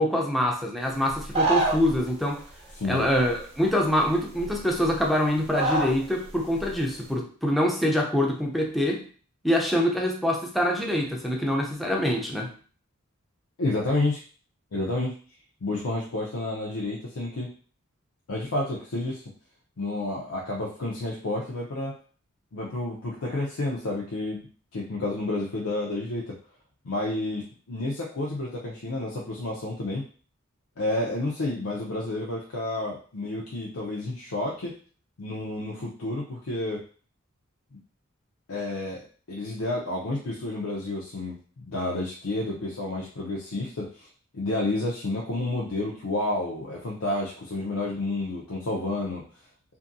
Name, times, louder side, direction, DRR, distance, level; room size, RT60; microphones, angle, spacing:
voice 1, 0.0-2.4 2.9-9.0 9.4-12.5, left 1 dB, ahead, 0 dB, 0.5 m, -25 dB
sound 1, 1.1-2.0 3.2-3.3 4.0-4.1 4.4-5.1 5.5-6.0 6.3-6.8, right 2 dB, 30° right, 0.8 m, -26 dB
voice 2, 2.8-3.1 13.6-14.2 14.7-15.1 15.6-17.5 18.3-19.2 19.8-22.0 22.5-24.5 24.7-26.4 26.8-30.0 30.8-34.7 35.2-36.8 37.7-37.8 38.5-39.0 39.3-44.1 44.3-49.2, left 2 dB, 85° left, -4 dB, 0.6 m, -30 dB
2.6 x 2.6 x 2.6 m, 0.41 s
head